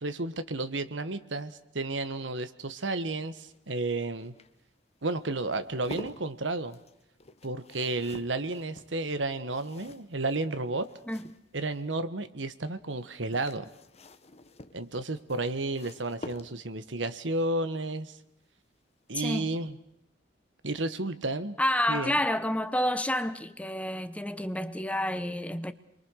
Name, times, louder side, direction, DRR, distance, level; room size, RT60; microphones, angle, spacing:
voice 1, 0.0-4.3 5.0-6.8 7.4-10.9 11.5-13.7 14.7-18.2 19.1-19.8 20.6-21.6 21.9-22.1, right 2 dB, 80° right, 1.4 m, -32 dB
sound 1, 3.0-11.9 13.0-16.9 18.5-18.8 19.1-19.2, left 2 dB, 35° left, 1.1 m, -48 dB
voice 2, 19.2-19.5 21.6-25.7, left 1 dB, 5° left, 0.9 m, -29 dB
28.5 x 23.0 x 6.5 m
head